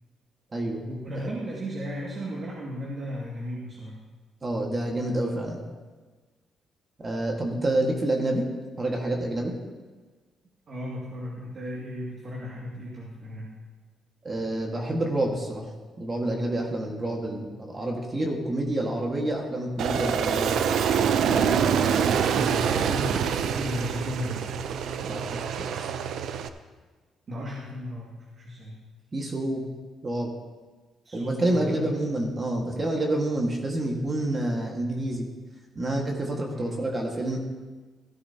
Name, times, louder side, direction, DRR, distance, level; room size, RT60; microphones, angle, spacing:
voice 1, 0.8-3.9 10.7-13.5 22.3-24.5 27.3-28.8 31.0-31.9 36.5-36.8, equal, 45° right, -4 dB, 2.2 m, -35 dB
voice 2, 4.4-5.6 7.0-8.5 8.8-9.5 14.2-15.7 16.0-20.8 25.0-25.9 29.1-29.6 30.0-30.3 31.1-35.3 35.7-37.4, right 1 dB, 30° right, 0 dB, 1.8 m, -28 dB
Aircraft, 19.8-26.5, right 7 dB, 75° right, 0.6 m, -25 dB
16.0 x 10.0 x 2.9 m, 1.4 s
cardioid pair, 90°, 0 cm